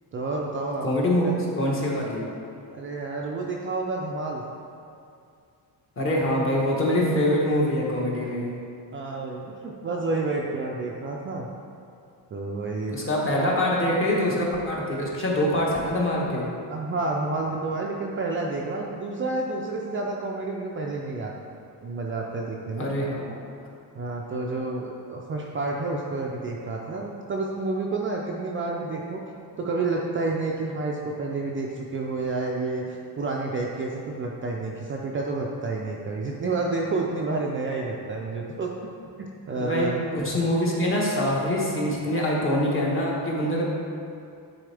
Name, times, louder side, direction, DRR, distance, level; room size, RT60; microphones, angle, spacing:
voice 1, 0.1-0.9 1.2-1.3 2.7-4.4 8.9-11.5 12.3-13.0 16.7-21.3 21.8-22.9 23.9-29.2 29.6-38.7 39.2-40.1, right 3 dB, 30° right, -2 dB, 0.4 m, -29 dB
voice 2, 0.8-2.3 6.0-8.5 12.9-16.5 22.8-23.3 39.6-43.6, left 1 dB, 30° left, -4 dB, 1.1 m, -24 dB
9.7 x 4.2 x 3.4 m, 2.5 s
cardioid pair, 170°, 43 cm